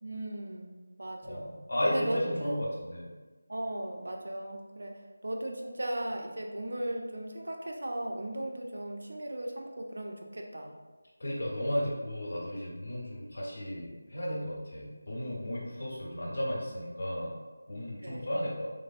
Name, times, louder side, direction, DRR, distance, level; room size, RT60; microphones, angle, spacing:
voice 1, 0.0-1.5 1.9-2.6 3.5-10.8 18.0-18.3, right 1 dB, 75° right, 2 dB, 0.4 m, -37 dB
voice 2, 1.2-3.1 11.2-17.3 17.7-18.7, equal, 55° left, -5 dB, 0.9 m, -34 dB
3.3 x 2.0 x 2.5 m, 1.3 s
figure-of-eight pair, 170°, 0 cm